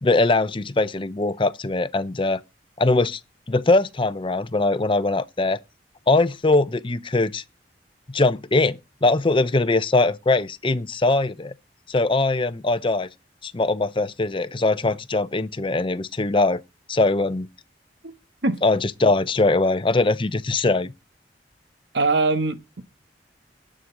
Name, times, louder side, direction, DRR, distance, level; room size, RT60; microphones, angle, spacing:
voice 1, 0.0-2.4 2.8-3.2 3.5-5.6 6.1-7.4 8.1-11.5 11.9-13.1 13.4-16.6 16.9-17.5 18.6-20.9, left 2 dB, 30° left, 0.7 m, -21 dB
voice 2, 21.9-22.8, right 3 dB, 70° right, 1.2 m, -22 dB
18.5 x 6.3 x 3.9 m
head